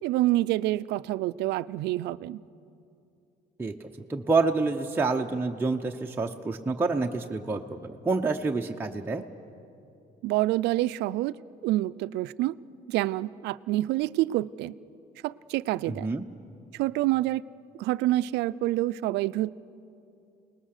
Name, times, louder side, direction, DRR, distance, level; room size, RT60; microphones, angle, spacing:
voice 1, 0.0-2.4 10.2-11.4 11.6-12.6 12.9-14.7 15.2-16.1 16.7-17.4 17.8-19.5, right 16 dB, 85° right, 17 dB, 0.5 m, -27 dB
voice 2, 3.6-9.2 15.9-16.2, right 3 dB, 10° right, 1 dB, 0.8 m, -28 dB
29.0 x 19.5 x 6.6 m, 2.7 s
cardioid pair, 110°, 17 cm